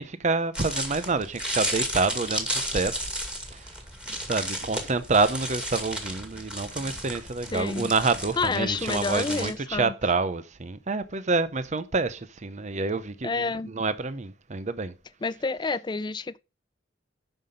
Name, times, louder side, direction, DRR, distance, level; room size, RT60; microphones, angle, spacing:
voice 1, 0.0-2.9 3.4-3.8 4.2-14.9, right 3 dB, 40° right, 0.8 m, -28 dB
sound 1, 0.5-9.5, equal, 5° right, 2.0 m, -33 dB
voice 2, 7.5-7.9 8.4-9.9 13.2-13.7 15.2-16.4, left 4 dB, 25° left, 0.4 m, -29 dB
9.1 x 5.9 x 5.3 m
head